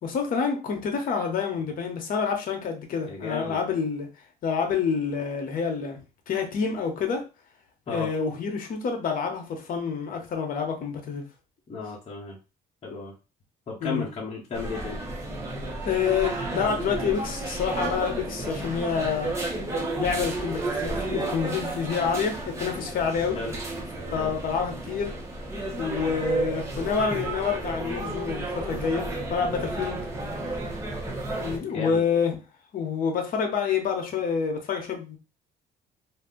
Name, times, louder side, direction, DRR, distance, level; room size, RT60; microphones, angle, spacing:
voice 1, 0.0-4.1 4.4-6.0 6.3-7.2 7.9-11.3 13.8-14.0 15.8-19.4 20.0-23.4 24.1-25.1 25.8-30.0 31.4-32.4 32.7-35.2, left 6 dB, 55° left, 4 dB, 0.9 m, -28 dB
voice 2, 3.1-3.6 7.9-8.1 11.7-12.4 12.8-13.1 13.7-15.0 23.3-23.6 24.1-24.3 31.7-32.0, left 4 dB, 30° left, -7 dB, 1.0 m, -34 dB
sound 1, 14.5-31.6, right 2 dB, 15° right, 0.9 m, -32 dB
2.6 x 2.3 x 3.7 m, 0.31 s
cardioid pair, 110°, 17 cm